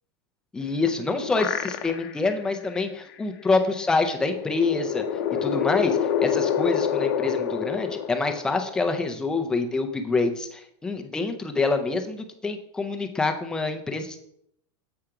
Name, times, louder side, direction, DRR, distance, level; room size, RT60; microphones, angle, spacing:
voice 1, 0.5-5.0 5.3-14.2, left 3 dB, 5° left, 5 dB, 0.4 m, -26 dB
sound 1, 0.7-2.3 2.7-2.8 4.1-8.9, left 8 dB, 45° left, 0.7 m, -27 dB
7.7 x 4.8 x 5.7 m, 0.73 s
supercardioid pair, 175°, 15 cm